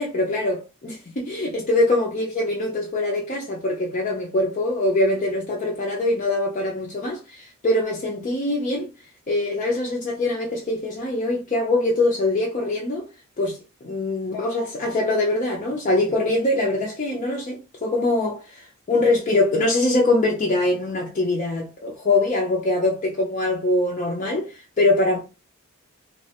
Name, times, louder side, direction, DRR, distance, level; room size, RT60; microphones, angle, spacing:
voice 1, 0.0-8.9 9.3-13.0 13.4-18.6 18.9-25.2, left 2 dB, 35° left, 0.5 m, -23 dB
3.1 x 2.1 x 2.8 m
head